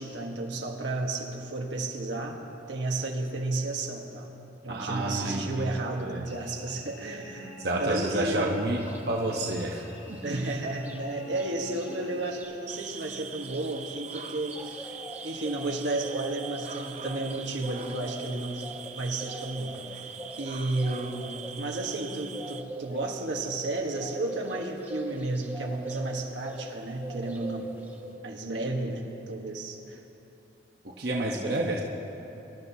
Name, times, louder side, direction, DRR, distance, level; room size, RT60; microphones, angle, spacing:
voice 1, 0.0-4.3 4.6-8.6 10.2-14.8 15.2-18.7 18.9-20.1 20.4-27.7 28.2-30.0, right 2 dB, 85° right, 1 dB, 1.4 m, -32 dB
voice 2, 4.7-5.7 6.0-6.3 7.6-8.8 9.1-9.8 10.3-10.4 31.0-31.8, right 1 dB, 60° right, -2 dB, 1.0 m, -29 dB
Cricket / Buzz, 6.3-12.5, left 2 dB, 55° left, 2.1 m, -48 dB
sound 1, 8.8-9.0 9.4-11.0 11.3-11.5 11.7-26.8 27.0-28.1, right 1 dB, 10° right, 1.4 m, -42 dB
sound 2, 12.7-22.6, right 7 dB, 40° right, 0.4 m, -42 dB
24.5 x 12.0 x 2.8 m, 3.0 s
head